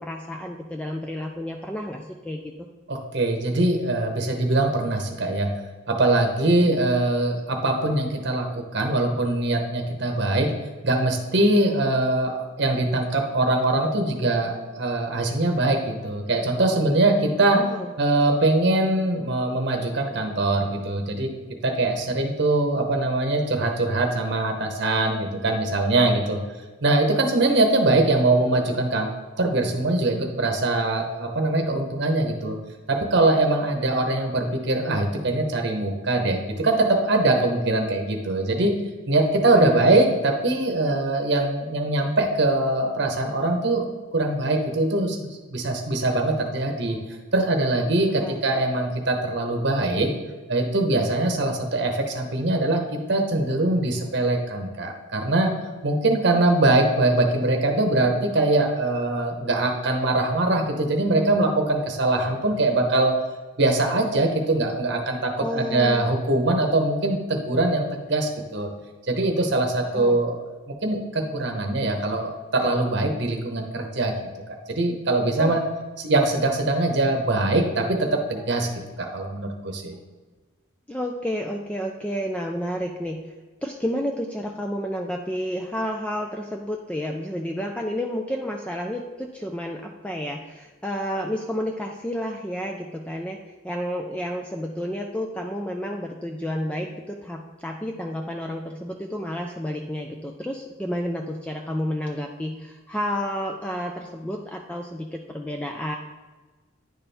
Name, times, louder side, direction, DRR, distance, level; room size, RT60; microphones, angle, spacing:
voice 1, 0.0-2.5 6.6-6.8 17.5-17.9 39.5-39.8 48.2-48.4 65.4-66.1 69.8-70.2 75.4-75.6 80.9-83.3 83.6-106.0, equal, 5° left, 2 dB, 0.3 m, -31 dB
voice 2, 2.9-5.5 5.9-10.5 10.8-17.6 18.0-21.3 21.6-26.4 26.8-29.1 29.4-32.6 32.9-38.7 39.1-43.8 44.1-47.0 47.3-50.1 50.5-55.5 55.8-63.1 63.6-67.8 68.1-68.7 69.1-70.4 70.8-74.1 74.7-75.6 76.0-78.7 79.0-80.0, right 2 dB, 55° right, 3 dB, 0.9 m, -22 dB
9.7 x 4.3 x 3.4 m, 1.3 s
head